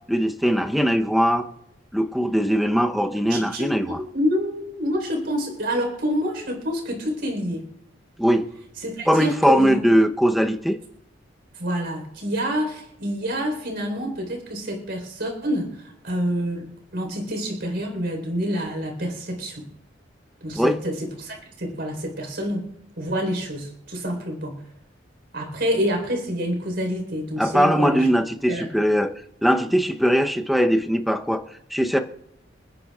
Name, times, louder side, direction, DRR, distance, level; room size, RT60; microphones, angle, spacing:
voice 1, 0.1-1.5 1.9-4.0 8.2-8.4 9.1-10.8 20.6-20.8 27.4-29.1 29.4-31.4 31.7-32.0, equal, ahead, 5 dB, 0.8 m, -20 dB
voice 2, 3.3-7.6 8.8-9.8 11.5-19.7 20.4-22.7 23.0-24.6 25.3-28.1 28.5-28.7, equal, 65° right, 1 dB, 4.0 m, -27 dB
28.5 x 9.8 x 2.4 m, 0.80 s
head